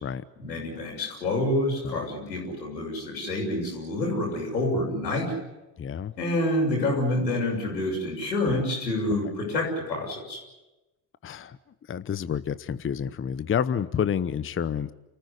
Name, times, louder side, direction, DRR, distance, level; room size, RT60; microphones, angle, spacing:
voice 1, 0.4-5.3 6.2-10.4, left 1 dB, 90° left, 1 dB, 6.8 m, -27 dB
voice 2, 5.8-6.1 8.5-8.6 11.2-11.6 11.9-14.9, left 8 dB, 25° left, 15 dB, 0.9 m, -29 dB
29.0 x 15.0 x 9.9 m, 1.0 s
hypercardioid pair, 65°, 50 cm